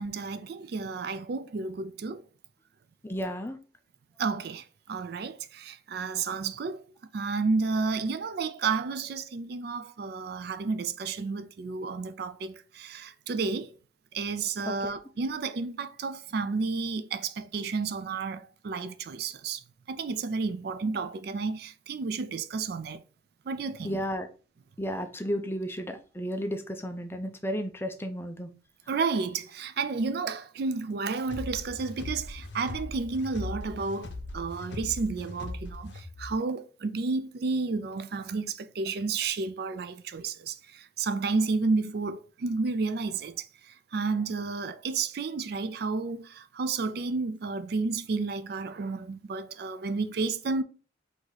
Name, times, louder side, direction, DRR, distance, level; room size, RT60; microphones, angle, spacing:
voice 1, 0.0-2.2 4.2-6.8 7.1-13.7 14.1-23.0 23.5-24.0 28.9-50.6, right 4 dB, 55° right, 0.3 m, -31 dB
voice 2, 3.0-3.6 14.8-14.9 23.8-24.3 24.8-28.5, equal, 10° left, 0.4 m, -33 dB
sound 1, 31.3-36.3, left 2 dB, 65° left, 0.7 m, -39 dB
4.7 x 2.7 x 3.9 m
head